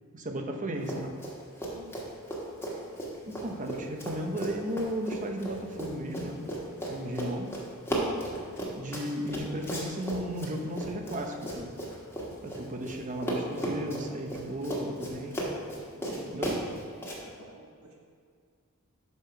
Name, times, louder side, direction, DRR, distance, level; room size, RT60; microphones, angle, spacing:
voice 1, 0.1-1.1 3.2-6.4 6.9-7.6 8.8-11.7 12.4-15.4 16.3-16.6, equal, 35° right, 3 dB, 0.8 m, -35 dB
Run, 0.8-1.3 1.6-13.0 13.2-17.2, right 1 dB, 10° left, 1.4 m, -35 dB
voice 2, 1.7-2.2 8.2-8.6 15.9-16.9 17.2-17.9, right 1 dB, 80° right, -2 dB, 1.3 m, -52 dB
6.7 x 5.0 x 5.8 m, 2.2 s
head